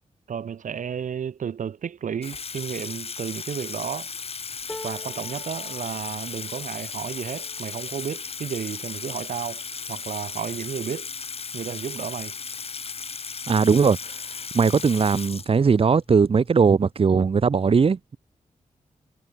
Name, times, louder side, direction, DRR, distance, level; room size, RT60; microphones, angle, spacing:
voice 1, 0.3-4.1 4.8-9.6 9.9-11.1 11.5-12.4, right 7 dB, 80° right, 2.0 m, -32 dB
Water tap faucet / Sink (filling or washing), 2.2-16.0, left 5 dB, 50° left, 3.8 m, -36 dB
sound 1, 4.7-10.8 11.4-11.6 11.9-12.7 13.6-13.7, left 1 dB, 15° left, 7.8 m, -47 dB
voice 2, 13.5-14.1 14.5-18.2, right 5 dB, 45° right, 1.5 m, -19 dB
wide cardioid pair, 130°, 13 cm